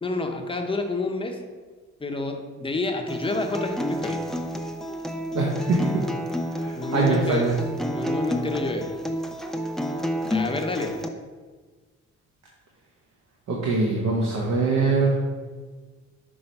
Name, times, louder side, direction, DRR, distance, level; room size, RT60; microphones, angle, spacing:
voice 1, 0.0-1.4 2.0-4.2 6.8-7.5 7.9-8.9 10.3-11.0, left 3 dB, 15° left, 3 dB, 0.8 m, -29 dB
Acoustic guitar, 3.1-11.1, equal, ahead, 0.4 m, -30 dB
voice 2, 5.3-6.0 6.5-7.5 13.5-15.1, right 3 dB, 60° right, -3 dB, 1.0 m, -23 dB
5.9 x 3.1 x 5.3 m, 1.4 s
cardioid pair, 90°, 30 cm